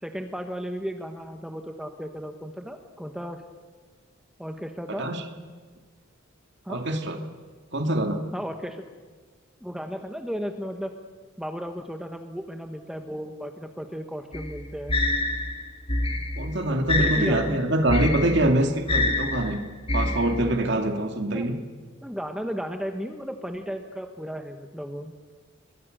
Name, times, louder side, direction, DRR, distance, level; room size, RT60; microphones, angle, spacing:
voice 1, 0.0-3.4 4.4-5.1 6.6-6.9 8.3-8.8 9.6-10.9 11.4-15.0 17.0-17.6 21.3-21.5 22.0-25.1, equal, 5° right, 5 dB, 1.2 m, -34 dB
voice 2, 4.9-5.2 6.7-7.2 7.7-8.2 16.4-19.6 19.9-21.5, right 1 dB, 55° right, 4 dB, 2.6 m, -24 dB
sound 1, 14.3-20.6, left 2 dB, 25° left, 2.0 m, -27 dB
30.0 x 22.5 x 6.7 m, 1.5 s
head